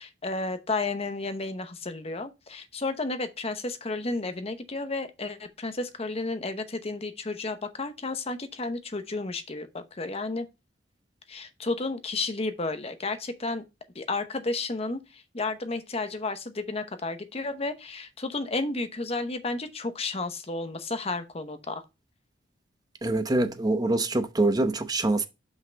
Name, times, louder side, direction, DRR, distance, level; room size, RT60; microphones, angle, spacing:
voice 1, 0.0-10.5 11.3-13.6 13.9-21.8, left 3 dB, 35° left, 0.9 m, -32 dB
voice 2, 23.0-25.3, right 2 dB, 20° right, 0.8 m, -25 dB
5.7 x 5.6 x 4.0 m
head